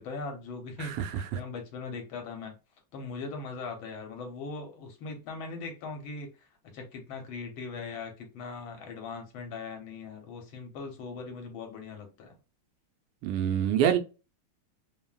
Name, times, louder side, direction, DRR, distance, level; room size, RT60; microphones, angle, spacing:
voice 1, 0.0-2.5 2.9-12.4, left 4 dB, 75° left, 1.5 m, -40 dB
voice 2, 0.8-1.4 13.2-14.0, right 9 dB, 90° right, 1.5 m, -26 dB
3.7 x 2.0 x 2.3 m
omnidirectional pair, 2.3 m